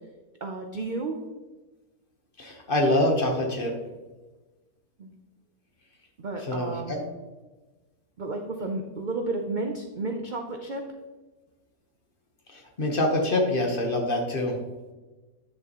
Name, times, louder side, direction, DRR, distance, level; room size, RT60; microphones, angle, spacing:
voice 1, 0.4-1.2 5.0-5.1 6.2-7.0 8.2-10.8, right 3 dB, 60° right, 3 dB, 0.5 m, -32 dB
voice 2, 2.4-3.7 6.4-7.0 12.5-14.5, left 1 dB, 40° left, 1 dB, 1.1 m, -25 dB
9.7 x 6.6 x 3.0 m, 1.2 s
omnidirectional pair, 1.6 m